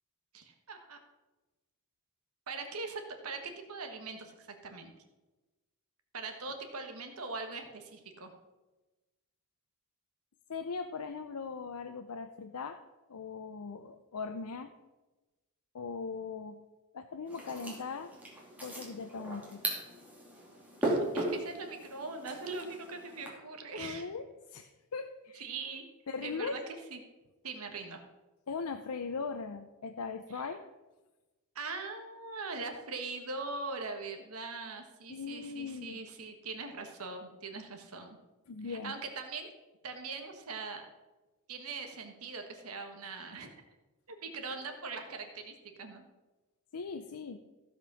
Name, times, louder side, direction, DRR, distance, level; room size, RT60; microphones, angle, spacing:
voice 1, 0.3-1.0 2.5-4.9 6.1-8.3 20.8-24.1 25.3-25.9 26.2-26.6 26.9-27.0 27.4-28.0 30.3-30.5 31.5-38.2 38.6-39.5 39.8-40.9 41.5-43.5 44.1-46.0, right 3 dB, 75° right, 5 dB, 1.5 m, -41 dB
voice 2, 10.5-12.8 13.1-14.7 15.7-16.6 16.9-18.1 18.6-19.6 23.8-24.2 24.5-25.5 26.1-26.6 28.5-30.6 35.1-36.0 38.5-39.0 46.7-47.4, left 5 dB, 90° left, 7 dB, 0.6 m, -39 dB
sound 1, 17.3-23.3, right 1 dB, 5° right, 2.8 m, -37 dB
15.5 x 5.2 x 6.3 m, 1.1 s
head